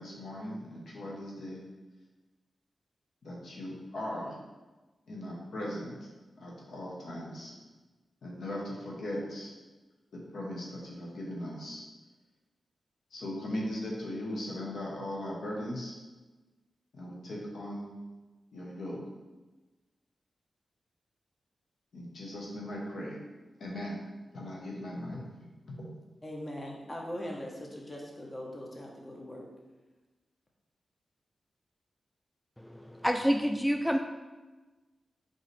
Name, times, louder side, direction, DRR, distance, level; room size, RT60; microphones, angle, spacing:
voice 1, 0.0-1.6 3.2-4.3 5.1-6.1 6.4-7.5 8.2-9.5 10.1-11.8 13.1-15.9 16.9-17.9 18.5-19.0 21.9-23.2 23.6-24.0 24.3-25.2, left 1 dB, 75° left, -3 dB, 1.1 m, -38 dB
voice 2, 26.2-29.5, left 1 dB, 30° left, -1 dB, 1.1 m, -41 dB
voice 3, 32.6-34.0, equal, 5° left, 4 dB, 0.3 m, -28 dB
3.9 x 3.9 x 3.3 m, 1.2 s
supercardioid pair, 40°, 0 cm